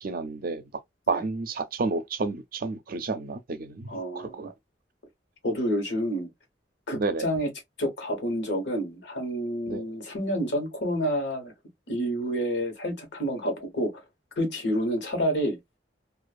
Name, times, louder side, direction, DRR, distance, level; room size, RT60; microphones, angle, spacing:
voice 1, 0.0-0.6 1.1-4.5 7.0-7.3 9.7-9.8, right 3 dB, 55° right, 0.5 m, -30 dB
voice 2, 3.9-4.5 5.4-6.3 6.9-7.5 7.8-11.5 11.9-13.9 14.4-15.6, equal, 80° left, 1.1 m, -29 dB
2.4 x 2.4 x 2.3 m
head